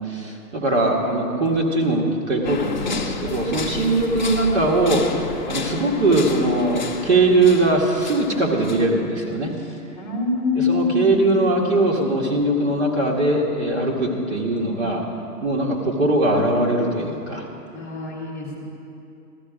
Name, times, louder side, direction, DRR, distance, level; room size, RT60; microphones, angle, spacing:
voice 1, 0.0-9.5 10.6-15.0 15.4-17.5 18.5-18.6, right 2 dB, 45° right, -2 dB, 1.9 m, -21 dB
sound 1, 2.4-9.0, left 4 dB, 30° left, 0.5 m, -32 dB
voice 2, 9.9-11.3 17.7-18.6, left 4 dB, ahead, -10 dB, 1.4 m, -24 dB
14.0 x 13.0 x 5.0 m, 2.7 s
hypercardioid pair, 165°, 49 cm